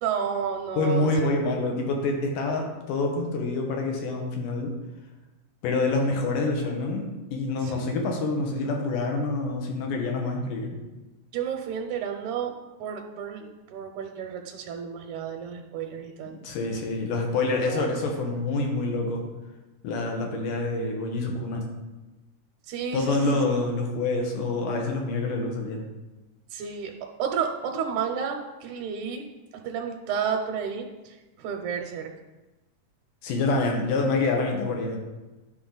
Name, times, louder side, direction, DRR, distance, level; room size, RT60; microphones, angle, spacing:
voice 1, 0.0-1.1 7.6-7.9 11.3-12.5 12.8-16.4 17.6-17.9 22.7-23.4 26.5-26.9 27.2-29.2 29.6-30.8 31.4-32.1, right 7 dB, 80° right, 2 dB, 2.0 m, -31 dB
voice 2, 0.7-4.7 5.6-10.8 16.4-19.2 19.8-21.7 22.9-25.8 33.2-35.0, left 3 dB, 90° left, 2 dB, 2.8 m, -27 dB
11.0 x 5.7 x 3.9 m, 1.1 s
omnidirectional pair, 3.6 m